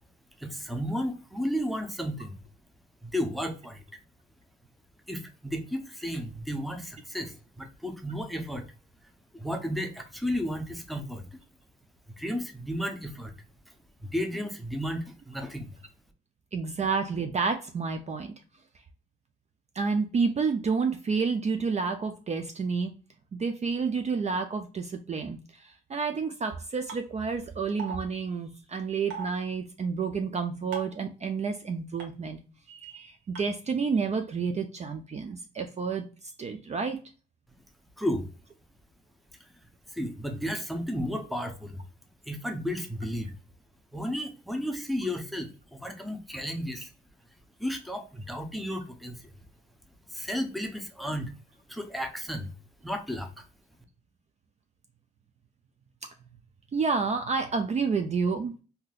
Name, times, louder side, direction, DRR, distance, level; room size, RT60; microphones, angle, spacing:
voice 1, 0.4-2.4 3.0-3.8 5.1-8.7 9.3-11.2 12.2-13.3 13.7-13.8 14.0-15.8 38.0-38.3 39.4-39.5 39.9-41.8 42.3-43.3 43.9-46.9 47.6-49.3 50.1-51.3 51.7-52.5 52.8-53.5, equal, ahead, 5 dB, 0.7 m, -33 dB
voice 2, 16.5-18.3 19.8-22.9 23.3-32.4 32.7-37.0 56.7-58.5, right 5 dB, 35° right, 6 dB, 0.5 m, -30 dB
sound 1, 26.9-27.0 27.8-28.0 29.1-29.3 30.7-31.0 32.0-32.1 33.4-33.5, right 5 dB, 80° right, 1.2 m, -36 dB
3.8 x 2.8 x 2.3 m, 0.35 s
cardioid pair, 90°, 20 cm